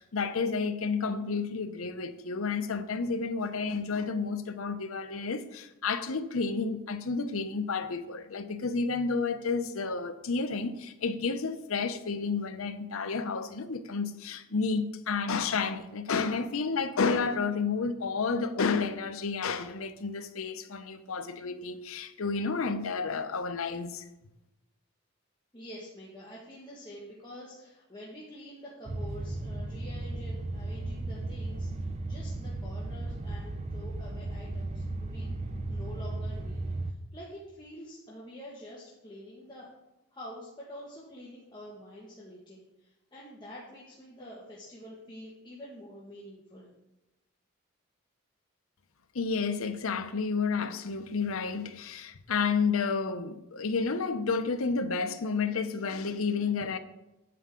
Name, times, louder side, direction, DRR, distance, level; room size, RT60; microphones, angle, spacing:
voice 1, 0.0-24.0 49.1-56.8, left 4 dB, 80° left, 0.7 m, -31 dB
voice 2, 25.5-35.4 35.7-39.7 40.1-46.7, equal, 20° left, 1.6 m, -47 dB
sound 1, 28.9-36.9, right 2 dB, 30° right, 0.5 m, -35 dB
9.3 x 8.5 x 3.7 m
head